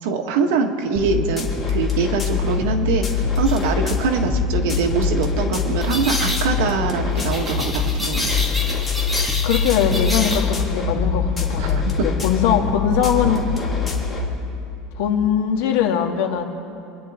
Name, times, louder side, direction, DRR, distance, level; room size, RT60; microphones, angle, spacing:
voice 1, 0.0-8.3 11.6-12.1, right 5 dB, 80° right, 4 dB, 1.5 m, -23 dB
sound 1, 0.9-14.3, left 5 dB, 20° left, 2.1 m, -23 dB
sound 2, 3.5-3.6 5.8-6.5 7.2-10.5, left 1 dB, ahead, 1.5 m, -28 dB
voice 2, 9.4-13.5 15.0-16.4, left 8 dB, 80° left, 3 dB, 1.6 m, -21 dB
25.0 x 10.0 x 3.6 m, 2.7 s
supercardioid pair, 150°, 0 cm